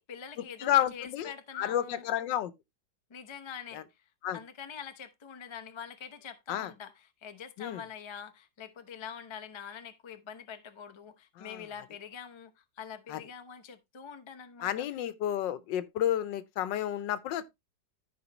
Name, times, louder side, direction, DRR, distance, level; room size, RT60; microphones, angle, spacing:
voice 1, 0.0-2.1 3.1-3.8 4.3-14.9, left 7 dB, 45° left, 0.3 m, -45 dB
voice 2, 0.6-2.5 3.7-3.8 4.2-4.4 6.5-6.7 7.6-7.8 11.4-11.6 13.1-13.2 14.6-17.5, left 11 dB, 80° left, 1.4 m, -31 dB
14.0 x 4.8 x 2.9 m
omnidirectional pair, 1.9 m